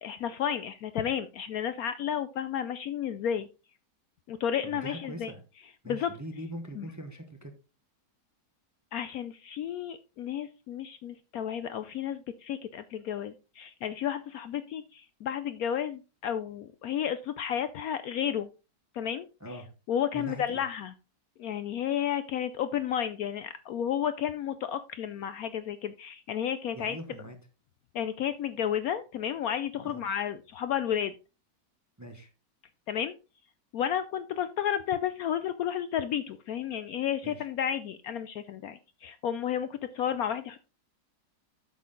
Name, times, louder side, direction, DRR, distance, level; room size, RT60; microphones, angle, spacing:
voice 1, 0.0-3.5 4.3-5.3 5.9-6.1 6.8-6.9 8.9-18.5 18.9-19.3 19.9-20.9 21.4-27.0 27.9-31.1 32.9-33.1 33.7-40.6, left 9 dB, 70° left, 12 dB, 0.9 m, -32 dB
voice 2, 4.6-5.4 5.8-7.5 19.4-19.7 20.1-20.6 26.7-27.4 29.8-30.0 32.0-32.3 37.2-37.5, right 1 dB, 15° right, 6 dB, 0.8 m, -42 dB
8.3 x 6.3 x 3.8 m, 0.30 s
omnidirectional pair, 1.9 m